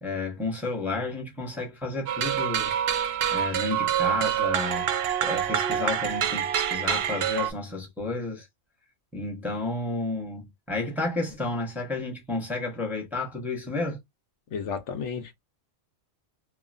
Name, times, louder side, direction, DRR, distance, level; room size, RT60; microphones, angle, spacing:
voice 1, 0.0-2.8 3.3-4.9 5.2-8.5 9.1-14.0, left 3 dB, ahead, 0.7 m, -31 dB
sound 1, 2.1-7.5, right 10 dB, 65° right, 0.7 m, -26 dB
voice 2, 14.5-15.3, left 6 dB, 70° left, 1.0 m, -32 dB
3.1 x 2.1 x 2.4 m
omnidirectional pair, 1.3 m